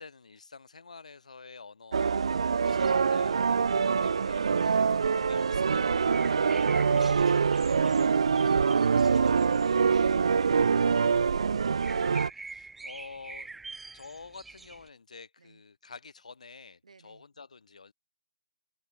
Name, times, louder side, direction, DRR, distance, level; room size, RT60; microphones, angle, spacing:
voice 1, 0.0-4.5 5.1-7.7 12.3-13.5 13.9-17.9, left 4 dB, 85° left, 5.7 m, -49 dB
sound 1, 1.9-12.3, right 5 dB, 55° right, 0.7 m, -25 dB
sound 2, 2.6-14.9, right 3 dB, 5° right, 2.9 m, -47 dB
voice 2, 4.5-5.4 15.4-15.6 16.8-17.3, right 4 dB, 80° right, 6.6 m, -56 dB
hypercardioid pair, 180°, 4 cm